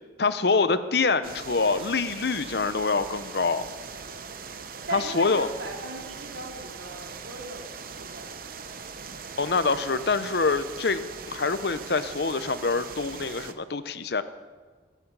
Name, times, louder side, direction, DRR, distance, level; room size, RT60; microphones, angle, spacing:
voice 1, 0.2-3.6 4.9-5.5 9.4-11.0 11.3-14.2, left 4 dB, 55° left, 12 dB, 0.7 m, -25 dB
sound 1, 1.2-13.5, right 5 dB, 50° right, 0.7 m, -41 dB
voice 2, 4.9-7.7 8.0-8.4, right 2 dB, 80° right, 0 dB, 2.3 m, -38 dB
21.0 x 8.4 x 5.5 m, 1.5 s
head